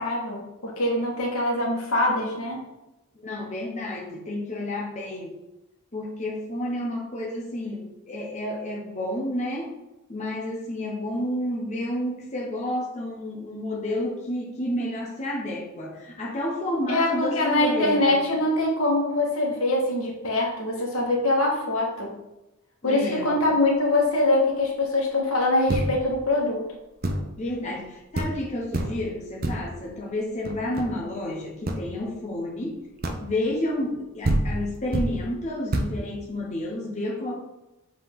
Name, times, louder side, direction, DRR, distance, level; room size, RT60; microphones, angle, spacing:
voice 1, 0.0-2.6 16.9-22.1 22.8-26.6, left 2 dB, 85° left, -1 dB, 1.6 m, -23 dB
voice 2, 3.2-5.3 5.9-9.7 10.1-18.2 22.8-23.4 27.4-32.8 33.2-37.3, left 1 dB, 35° left, -2 dB, 1.0 m, -30 dB
sound 1, 25.7-26.2 27.0-27.4 27.8-27.9 28.1-28.5 28.7-29.1 29.4-29.8 30.4-31.1 31.6-31.9 33.0-33.4 34.0-34.1 34.2-35.2 35.7-36.0, right 1 dB, 45° right, 0.7 m, -27 dB
7.2 x 3.9 x 3.7 m, 0.96 s
head